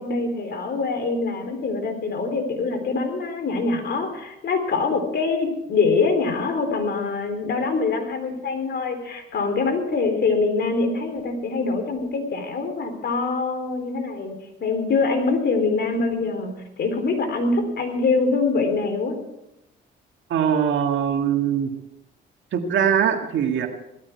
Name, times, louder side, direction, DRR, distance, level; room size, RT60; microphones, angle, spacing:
voice 1, 0.0-14.3 14.6-19.2, left 4 dB, 55° left, 6 dB, 3.8 m, -24 dB
voice 2, 20.3-21.7 22.5-23.7, right 8 dB, 70° right, 4 dB, 2.0 m, -21 dB
18.0 x 14.0 x 4.6 m, 0.86 s
cardioid pair, 90°, 20 cm